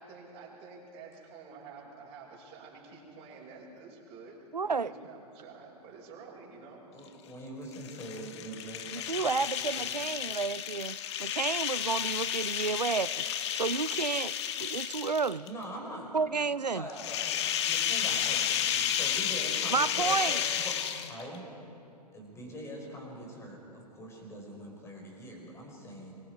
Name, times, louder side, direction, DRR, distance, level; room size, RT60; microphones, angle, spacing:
voice 1, 0.0-6.8, right 4 dB, 25° right, -4 dB, 6.5 m, -49 dB
voice 2, 4.5-4.9 8.9-13.2 13.5-15.5 16.1-16.9 19.7-20.4, right 4 dB, 85° right, 19 dB, 0.6 m, -31 dB
voice 3, 6.9-10.0 15.5-16.2 16.7-20.8 21.0-21.5 22.1-26.1, equal, 15° left, 0 dB, 5.3 m, -43 dB
sound 1, 7.7-15.5 16.9-21.4, left 10 dB, 45° left, 1.3 m, -32 dB
26.0 x 23.0 x 4.9 m, 2.7 s
figure-of-eight pair, 115°, 21 cm